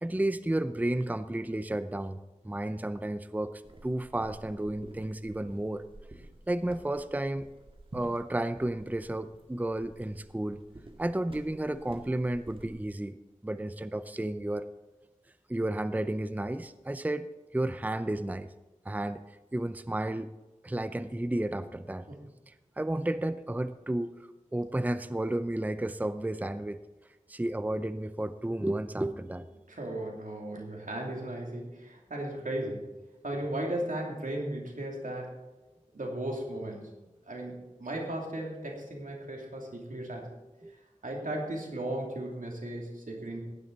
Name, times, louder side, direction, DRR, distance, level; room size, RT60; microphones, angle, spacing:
voice 1, 0.0-2.2 2.4-5.8 6.5-7.5 7.9-10.6 11.0-13.2 13.4-14.7 15.5-17.3 17.5-18.5 18.9-19.2 19.5-20.3 20.6-22.1 22.5-24.1 24.5-26.8 27.3-29.5 33.3-33.4 40.6-40.7, right 1 dB, 10° right, 12 dB, 0.5 m, -32 dB
sound 1, 3.6-12.9, right 1 dB, 40° right, 1.8 m, -51 dB
voice 2, 29.7-32.8 33.2-35.4 35.9-36.9 37.3-40.3 41.0-43.4, right 1 dB, 90° right, 0 dB, 2.8 m, -36 dB
15.5 x 11.0 x 4.0 m, 1.1 s
wide cardioid pair, 45°, 13 cm